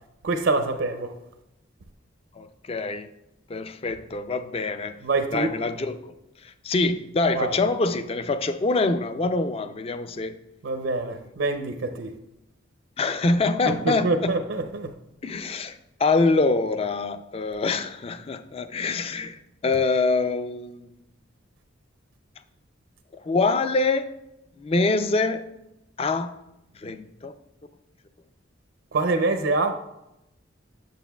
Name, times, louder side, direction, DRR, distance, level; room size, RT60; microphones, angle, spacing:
voice 1, 0.2-1.1 5.0-5.6 7.3-7.6 10.6-12.1 13.6-14.9 28.9-29.7, right 3 dB, 75° right, 7 dB, 0.5 m, -25 dB
voice 2, 2.4-3.1 3.5-5.0 5.3-6.0 6.4-10.4 13.0-14.4 15.2-20.9 23.2-24.1 24.6-25.4 26.0-26.4 26.8-27.3, left 3 dB, 30° left, 10 dB, 0.3 m, -25 dB
9.4 x 6.9 x 2.3 m, 0.88 s
head